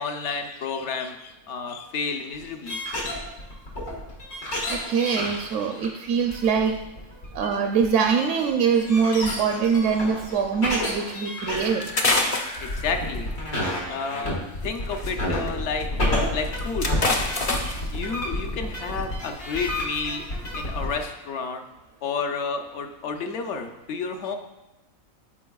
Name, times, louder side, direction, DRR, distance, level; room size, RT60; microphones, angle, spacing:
voice 1, 0.0-2.8 12.6-16.9 17.9-20.2 20.6-21.6 22.0-24.4, left 5 dB, 60° left, 6 dB, 0.9 m, -31 dB
sound 1, 2.3-21.1, left 1 dB, 85° left, 2.1 m, -30 dB
voice 2, 4.7-6.8 7.3-11.8, right 6 dB, 70° right, 3 dB, 0.8 m, -23 dB
sound 2, 11.5-13.3 14.6-15.1 15.5-15.6 15.8-15.9 16.3-17.9 18.9-19.1 19.6-20.0 20.4-20.7, left 2 dB, 35° left, 0.6 m, -27 dB
13.5 x 4.6 x 2.3 m, 0.99 s
omnidirectional pair, 1.4 m